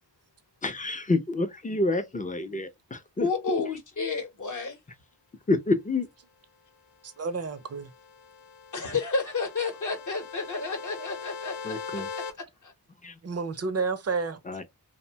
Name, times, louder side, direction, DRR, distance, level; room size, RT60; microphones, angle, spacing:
voice 1, 0.6-3.3 5.5-6.1 11.6-12.1 13.0-13.2 14.5-14.6, left 2 dB, 20° left, 0.5 m, -28 dB
voice 2, 3.2-4.8 8.7-12.0 12.6-12.7, left 4 dB, 45° left, 0.8 m, -31 dB
voice 3, 7.0-7.9 13.2-14.4, right 4 dB, 40° right, 0.5 m, -30 dB
sound 1, 7.4-12.3, left 6 dB, 85° left, 0.8 m, -41 dB
2.6 x 2.1 x 2.7 m
wide cardioid pair, 95°, 41 cm